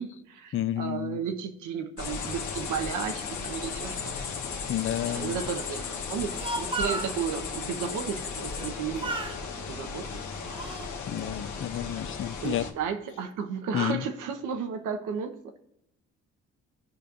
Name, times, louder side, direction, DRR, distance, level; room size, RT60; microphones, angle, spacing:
voice 1, 0.0-4.1 5.0-10.2 12.4-15.6, right 7 dB, 90° right, 6 dB, 1.0 m, -34 dB
voice 2, 0.5-1.2 4.7-5.4 11.1-12.7 13.7-14.0, left 12 dB, 45° left, 16 dB, 0.4 m, -30 dB
sound 1, 2.0-12.7, left 5 dB, 75° left, 1.3 m, -36 dB
Speech, 6.1-7.2 8.5-8.7 9.0-9.4 10.1-10.9, right 3 dB, 15° right, 0.9 m, -34 dB
16.0 x 5.3 x 2.5 m, 0.82 s
cardioid pair, 90°, 30 cm